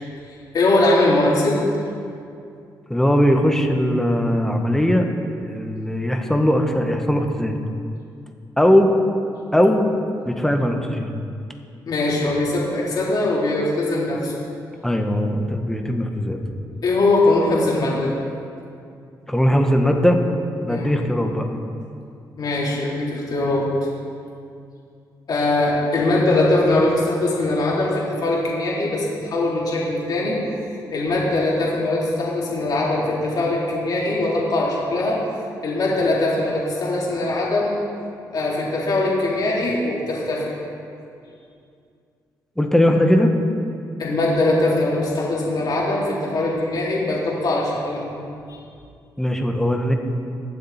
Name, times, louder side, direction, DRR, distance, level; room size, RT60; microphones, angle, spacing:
voice 1, 0.5-1.6 11.9-14.3 16.8-18.1 20.7-20.9 22.4-23.7 25.3-30.4 30.9-35.2 35.6-37.7 38.3-40.5 44.0-48.1 48.5-48.6, left 2 dB, 60° left, -5 dB, 3.9 m, -21 dB
voice 2, 2.9-5.1 5.4-7.6 8.6-8.9 9.5-9.9 10.3-11.1 14.8-16.4 19.3-20.2 20.6-21.4 42.6-43.3 49.2-50.0, equal, 5° left, 3 dB, 1.4 m, -19 dB
22.0 x 7.6 x 4.4 m, 2.4 s
cardioid pair, 85°, 8 cm